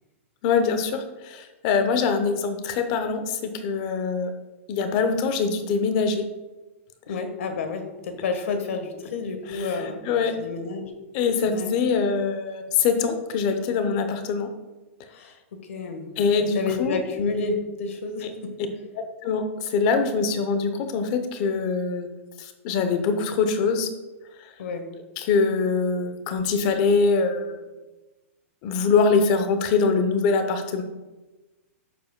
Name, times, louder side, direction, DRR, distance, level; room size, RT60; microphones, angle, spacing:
voice 1, 0.4-4.3 4.7-6.2 9.5-9.7 10.1-10.4 11.1-14.5 16.2-17.0 18.2-18.3 19.2-22.1 22.4-23.9 25.2-27.6 28.6-30.8, left 5 dB, 30° left, 8 dB, 0.7 m, -23 dB
voice 2, 7.1-10.0 10.3-10.9 11.4-11.7 15.1-16.1 16.4-18.5 24.6-24.9, left 4 dB, 70° left, 6 dB, 1.3 m, -30 dB
10.0 x 7.1 x 2.2 m, 1.2 s
supercardioid pair, 170°, 8 cm